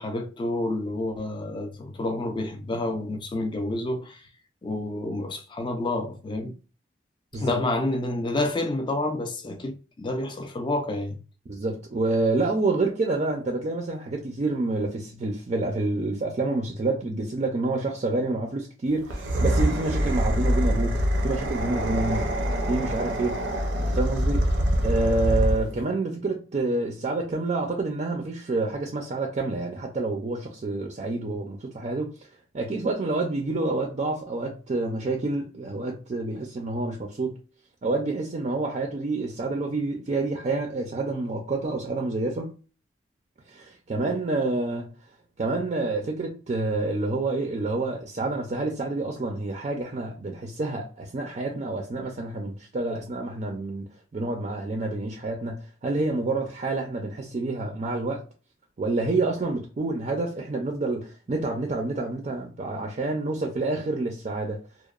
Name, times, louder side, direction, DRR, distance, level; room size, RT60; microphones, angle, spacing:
voice 1, 0.0-4.3 4.6-6.5 7.3-11.2, left 2 dB, 25° left, 0.4 m, -29 dB
voice 2, 11.5-22.2 22.7-23.4 23.8-24.5 24.8-32.1 32.5-37.4 37.8-42.5 43.5-44.9 45.4-53.9 54.1-58.2 58.8-64.6, right 2 dB, 40° right, 0.4 m, -28 dB
sound 1, 19.0-25.8, equal, 85° right, 0.6 m, -25 dB
2.8 x 2.0 x 2.3 m
head